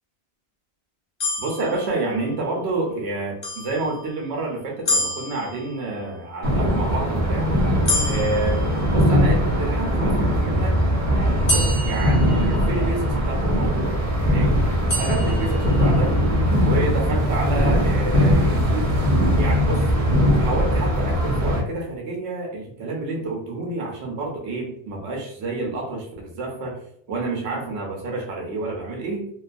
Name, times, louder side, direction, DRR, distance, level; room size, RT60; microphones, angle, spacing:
sound 1, 1.2-2.5 3.4-4.3 4.8-6.1 7.8-9.4 11.5-13.1 14.9-16.1, left 1 dB, 45° left, 0.8 m, -29 dB
voice 1, 1.4-7.5 8.0-10.8 11.4-14.6 15.0-16.2 16.6-18.9 19.4-19.9 20.4-26.8 27.1-29.3, right 2 dB, 85° right, -1 dB, 0.9 m, -29 dB
sound 2, 6.4-21.6, equal, 40° right, 0.6 m, -20 dB
2.4 x 2.3 x 2.5 m, 0.69 s
omnidirectional pair, 1.1 m